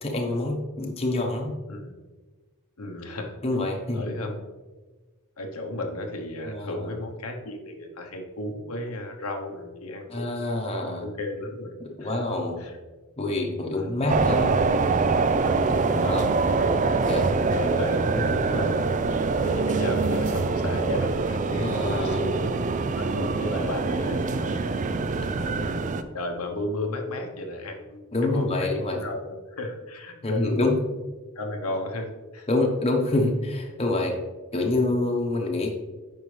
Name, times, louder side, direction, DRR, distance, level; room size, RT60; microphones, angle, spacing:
voice 1, 0.0-1.5 3.4-4.1 6.5-6.9 10.1-11.1 12.0-12.6 13.2-14.5 15.9-16.3 17.1-17.2 18.1-18.5 21.6-22.2 28.1-29.0 30.2-30.8 32.5-34.1 34.5-35.7, left 2 dB, 30° left, 1 dB, 1.0 m, -26 dB
voice 2, 2.8-3.4 3.9-4.5 5.4-10.3 10.8-11.7 12.0-12.8 13.7-14.0 16.0-16.8 17.5-18.9 19.4-22.6 23.0-24.8 25.4-30.7 31.3-32.5, left 1 dB, 85° left, 3 dB, 1.0 m, -34 dB
sound 1, 14.1-26.0, right 4 dB, 35° right, 0.4 m, -24 dB
9.1 x 5.5 x 3.3 m, 1.3 s
head